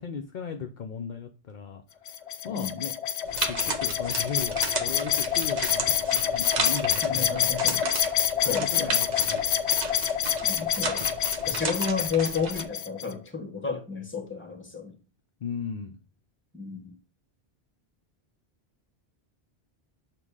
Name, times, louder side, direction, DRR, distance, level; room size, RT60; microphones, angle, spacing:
voice 1, 0.0-1.8 2.4-2.9 3.5-7.5 8.4-9.7 15.4-16.0, left 6 dB, 55° left, 0.6 m, -37 dB
sound 1, 2.1-13.1, left 9 dB, 90° left, 0.9 m, -27 dB
voice 2, 2.5-2.8 7.0-7.9 8.4-9.0 10.4-11.1 11.5-15.0 16.5-16.9, left 5 dB, 10° left, 1.1 m, -32 dB
sound 2, 3.2-12.6, right 3 dB, 45° right, 0.9 m, -34 dB
7.2 x 2.9 x 4.7 m
omnidirectional pair, 1.1 m